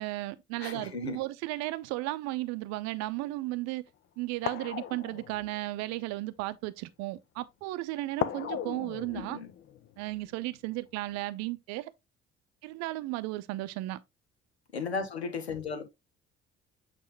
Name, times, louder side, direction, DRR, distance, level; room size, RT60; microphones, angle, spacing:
voice 1, 0.0-3.8 4.2-9.4 10.0-11.9 12.6-14.0, right 18 dB, 55° right, 0.7 m, -35 dB
voice 2, 0.6-1.2 9.1-9.5 14.7-15.9, left 4 dB, 85° left, 1.0 m, -35 dB
sound 1, 2.8-3.1 3.9-4.0 4.4-6.1 8.2-10.7 11.0-11.2, left 10 dB, 40° left, 0.6 m, -38 dB
8.3 x 3.5 x 3.2 m
figure-of-eight pair, 50°, 32 cm